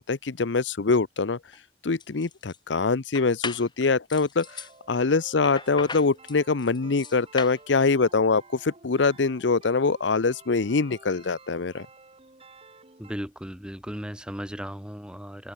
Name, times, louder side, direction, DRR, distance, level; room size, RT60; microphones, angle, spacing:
voice 1, 0.0-1.4 1.8-11.9, left 4 dB, 80° left, 0.7 m, -24 dB
sound 1, 1.5-1.6 2.0-2.6 3.2-3.7 4.1-4.7 5.4-7.6, left 5 dB, 25° left, 1.3 m, -37 dB
sound 2, 4.4-13.1, right 3 dB, 35° right, 4.9 m, -52 dB
voice 2, 13.0-15.5, equal, 5° right, 2.6 m, -36 dB
open air
head